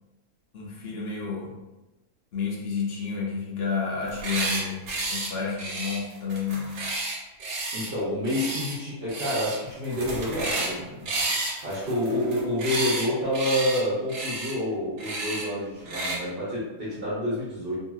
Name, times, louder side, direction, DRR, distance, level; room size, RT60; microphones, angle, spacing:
voice 1, 0.5-1.6 2.3-6.8, left 5 dB, 65° left, -3 dB, 0.6 m, -30 dB
sound 1, 4.0-4.6 4.9-5.3 5.6-7.9 8.2-8.8 9.1-9.6 9.8-10.7 11.1-13.1 13.3-13.8 14.1-14.5 15.0-15.4 15.9-16.2, right 2 dB, 75° right, 1.1 m, -31 dB
voice 2, 7.7-11.1 11.6-17.7, left 1 dB, 50° right, -9 dB, 0.8 m, -28 dB
2.8 x 2.7 x 2.3 m, 1.1 s
omnidirectional pair, 1.6 m